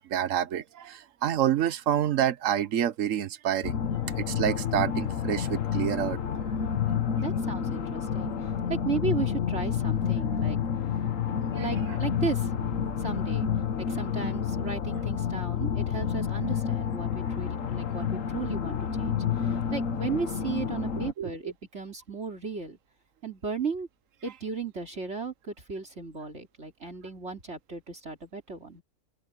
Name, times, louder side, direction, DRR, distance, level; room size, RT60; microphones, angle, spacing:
voice 1, 0.0-3.7 4.2-6.2 11.5-11.7 21.2-21.3, right 10 dB, 75° right, 1.2 m, -28 dB
sound 1, 3.6-21.1, left 8 dB, 80° left, 1.5 m, -29 dB
voice 2, 7.2-10.6 11.5-13.5 13.8-22.8 23.2-23.9 24.2-28.8, right 5 dB, 60° right, 3.4 m, -35 dB
omnidirectional pair, 1.3 m